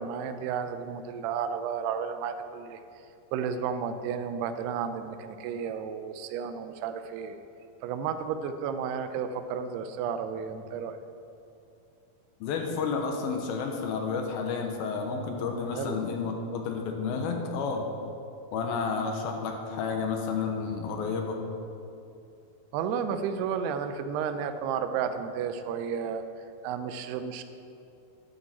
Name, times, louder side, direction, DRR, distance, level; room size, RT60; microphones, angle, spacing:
voice 1, 0.0-2.8 3.3-7.4 7.8-11.0 15.7-16.0 22.7-26.2 26.6-27.4, right 7 dB, 85° right, 9 dB, 2.7 m, -32 dB
voice 2, 12.4-17.9 18.5-21.4, left 5 dB, 75° left, 3 dB, 2.6 m, -31 dB
12.0 x 10.5 x 4.2 m, 2.6 s
omnidirectional pair, 4.6 m